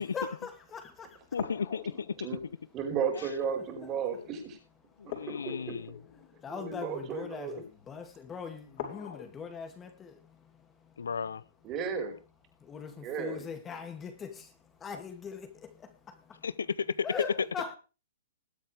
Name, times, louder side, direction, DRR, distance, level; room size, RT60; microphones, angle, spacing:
voice 1, 0.1-1.4 3.1-3.6 5.0-5.3 6.2-11.4 12.5-16.5 17.0-17.8, left 6 dB, 15° left, 2.6 m, -42 dB
voice 2, 1.3-2.1 5.1-5.9 11.0-11.4 16.4-17.0, left 6 dB, 90° left, 0.7 m, -34 dB
sound 1, 1.3-3.5 5.1-7.3 8.7-9.2, left 10 dB, 50° left, 5.1 m, -44 dB
voice 3, 2.7-4.6 5.3-5.7 6.5-7.6 11.6-12.1 13.0-13.5, right 6 dB, 25° right, 5.0 m, -34 dB
21.0 x 8.2 x 3.5 m
hypercardioid pair, 140°, 0 cm